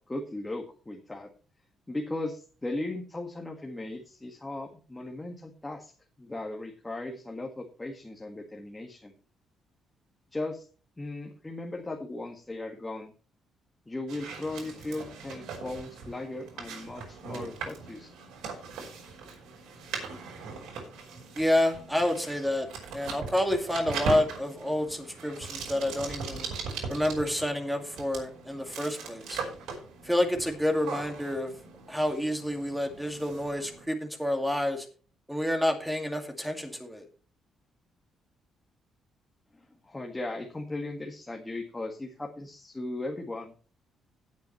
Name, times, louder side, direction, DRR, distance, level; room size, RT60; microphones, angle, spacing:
voice 1, 0.1-1.3 1.9-5.9 6.2-9.1 10.3-10.7 11.0-13.1 13.9-18.1 39.5-43.5, left 2 dB, 15° left, 2 dB, 1.8 m, -37 dB
sound 1, 14.1-33.9, right 5 dB, 90° right, 5.1 m, -40 dB
voice 2, 21.4-22.7 22.9-26.5 26.9-29.4 30.0-31.5 31.9-34.9 35.3-37.0, left 1 dB, 5° right, 4 dB, 2.2 m, -29 dB
17.5 x 8.5 x 3.2 m, 0.38 s
cardioid pair, 120°, 0 cm